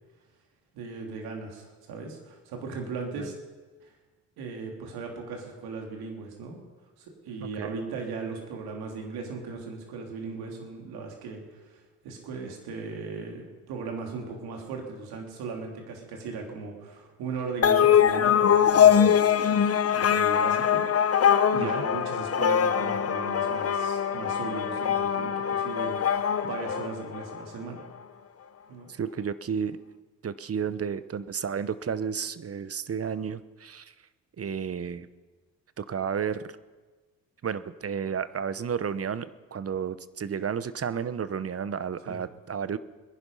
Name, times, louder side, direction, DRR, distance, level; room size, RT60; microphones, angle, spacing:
voice 1, 0.7-3.4 3.8-3.9 4.4-6.6 7.0-19.1 19.5-21.2 21.5-27.8 28.7-28.9 42.0-42.2, right 4 dB, 80° right, 2 dB, 3.2 m, -38 dB
voice 2, 7.4-7.7 21.6-21.8 28.9-29.8 30.2-33.9 34.4-35.1 35.8-36.5 37.4-42.8, right 7 dB, 40° right, 15 dB, 1.0 m, -32 dB
sound 1, 17.6-27.4, left 8 dB, 40° left, 0.9 m, -22 dB
22.0 x 10.5 x 5.6 m, 1.3 s
supercardioid pair, 60°, 37 cm